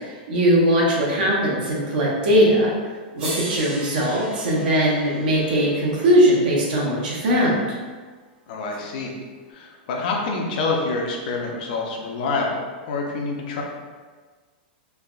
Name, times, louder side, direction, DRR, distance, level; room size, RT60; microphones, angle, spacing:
voice 1, 0.3-2.7 3.1-7.6, equal, 65° right, -4 dB, 0.9 m, -19 dB
sound 1, 2.6-2.7 3.2-7.4 8.7-8.8, right 2 dB, 25° right, 0.9 m, -38 dB
voice 2, 8.5-9.1 9.5-13.6, left 3 dB, 60° left, 0 dB, 0.6 m, -27 dB
3.3 x 2.1 x 2.4 m, 1.4 s
hypercardioid pair, 145°, 5 cm